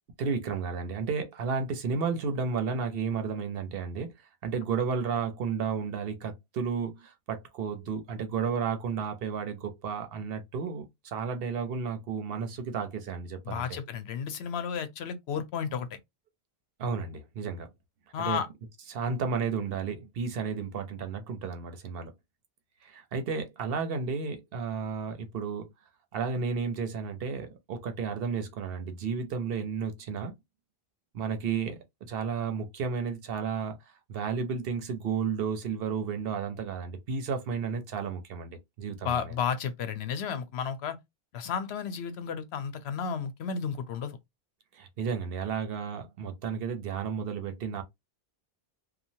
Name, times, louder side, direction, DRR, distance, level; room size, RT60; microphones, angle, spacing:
voice 1, 0.2-4.1 4.4-13.8 16.8-17.7 18.2-18.4 18.9-22.1 22.8-25.7 26.1-30.3 31.1-31.8 32.1-33.8 34.1-39.3 44.7-47.8, right 5 dB, 65° right, 0.8 m, -32 dB
voice 2, 13.5-15.9 18.1-18.5 39.0-41.0 41.3-44.2, left 7 dB, 85° left, 0.9 m, -32 dB
3.0 x 2.2 x 2.6 m
omnidirectional pair, 1.1 m